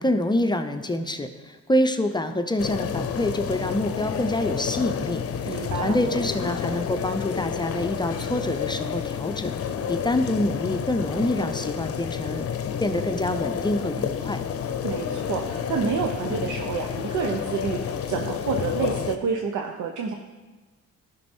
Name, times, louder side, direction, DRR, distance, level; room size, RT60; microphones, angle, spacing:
voice 1, 0.0-9.6 9.9-12.5 12.8-14.4, left 1 dB, 15° left, 7 dB, 0.6 m, -26 dB
sound 1, 2.6-19.2, left 7 dB, 50° left, 0.7 m, -30 dB
voice 2, 5.5-6.0 14.8-20.1, right 6 dB, 80° right, 3 dB, 0.8 m, -29 dB
11.5 x 5.4 x 4.4 m, 1.2 s
cardioid pair, 90°, 30 cm